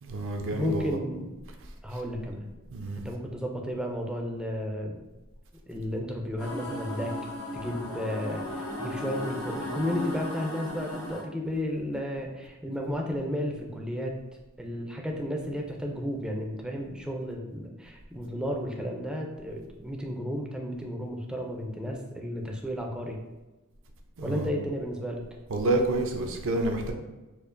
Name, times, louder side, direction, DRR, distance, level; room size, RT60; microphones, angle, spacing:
voice 1, 0.0-1.0 1.9-2.0 2.7-3.0 24.2-24.5 25.5-26.9, right 2 dB, 65° right, 3 dB, 0.5 m, -29 dB
voice 2, 0.5-1.3 1.8-2.5 3.0-5.0 5.7-7.1 7.5-14.1 14.6-23.2 24.2-25.2, equal, 5° right, 0 dB, 0.4 m, -33 dB
sound 1, 6.4-11.2, left 1 dB, 85° left, 0.9 m, -36 dB
4.3 x 2.4 x 2.5 m, 1.1 s
head